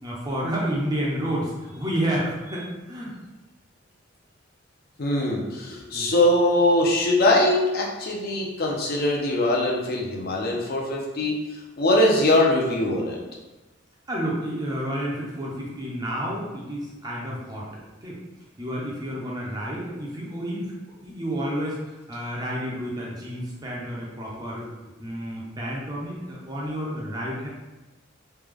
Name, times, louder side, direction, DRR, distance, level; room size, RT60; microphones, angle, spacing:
voice 1, 0.0-3.1 5.9-6.1 14.1-17.7 18.0-18.2 18.6-20.7 21.0-24.7 25.0-27.5, equal, 20° right, -4 dB, 0.6 m, -30 dB
voice 2, 5.0-11.4 11.8-13.2, left 1 dB, 50° left, -2 dB, 0.6 m, -22 dB
3.2 x 2.2 x 3.4 m, 1.1 s
head